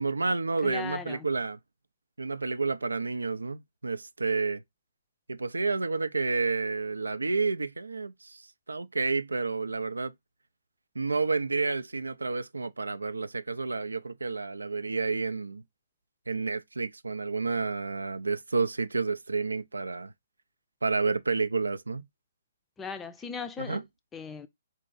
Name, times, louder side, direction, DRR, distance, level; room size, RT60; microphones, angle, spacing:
voice 1, 0.0-1.6 2.2-4.6 5.3-10.1 11.0-15.6 16.3-20.1 20.8-22.1 23.6-23.8, right 4 dB, 85° right, 0.3 m, -30 dB
voice 2, 0.6-1.3 22.8-23.8 24.1-24.5, left 6 dB, 15° left, 0.4 m, -38 dB
3.9 x 2.5 x 3.7 m
figure-of-eight pair, 130°, 0 cm